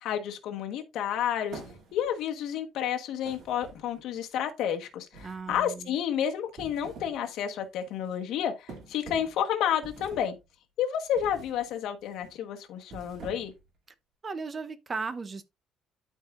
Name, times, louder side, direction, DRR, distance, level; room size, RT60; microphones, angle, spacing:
voice 1, 0.0-1.6 1.9-10.4 10.8-13.5, left 9 dB, 70° left, 1.2 m, -30 dB
sound 1, 1.5-2.2 3.2-4.1 5.1-5.8 6.4-7.2 7.6-7.8 8.7-9.4 9.8-10.4 11.1-11.6 12.0-12.3 12.8-13.7, right 3 dB, 50° right, 2.5 m, -46 dB
voice 2, 5.2-5.9 14.2-15.4, right 4 dB, 25° right, 0.7 m, -36 dB
12.0 x 4.7 x 2.5 m
cardioid pair, 150°, 0 cm